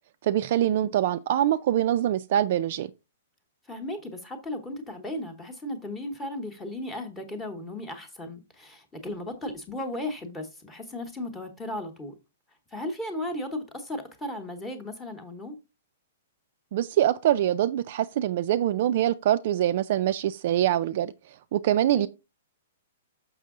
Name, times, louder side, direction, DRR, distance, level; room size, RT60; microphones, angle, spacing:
voice 1, 0.2-2.9 16.7-21.1 21.5-22.1, right 12 dB, 40° right, 0.3 m, -24 dB
voice 2, 3.7-12.1 12.7-15.6 21.9-22.1, left 1 dB, 5° left, 1.0 m, -36 dB
6.6 x 6.1 x 3.6 m
hypercardioid pair, 180°, 0 cm